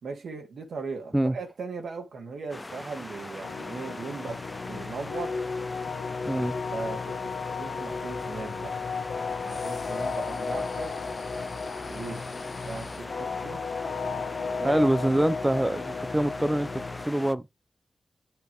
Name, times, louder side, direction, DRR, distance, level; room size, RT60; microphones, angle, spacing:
voice 1, 0.0-5.4 6.7-8.8 9.4-10.9 11.9-12.3 12.7-13.7 14.6-14.9, right 4 dB, 85° right, 2.1 m, -38 dB
sound 1, 2.5-17.3, left 2 dB, 20° left, 0.4 m, -41 dB
sound 2, 3.4-17.1, left 5 dB, 80° left, 1.4 m, -34 dB
sound 3, 7.9-13.1, left 4 dB, 60° left, 1.3 m, -46 dB
voice 2, 14.6-17.5, right 1 dB, 10° right, 0.7 m, -25 dB
7.0 x 6.3 x 3.3 m
cardioid pair, 75°, 0 cm